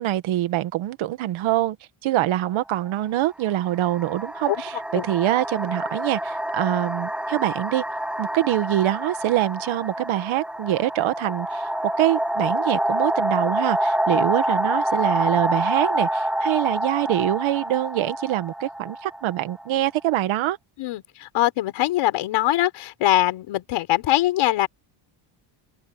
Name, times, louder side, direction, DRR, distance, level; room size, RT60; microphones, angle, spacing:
voice 1, 0.0-1.8 2.0-7.8 8.2-11.7 12.0-20.6, right 14 dB, 75° right, 1.7 m, -24 dB
sound 1, 2.3-2.5 3.4-20.1, right 1 dB, ahead, 1.3 m, -27 dB
voice 2, 20.8-24.7, left 15 dB, 75° left, 4.5 m, -22 dB
cardioid pair, 135°, 48 cm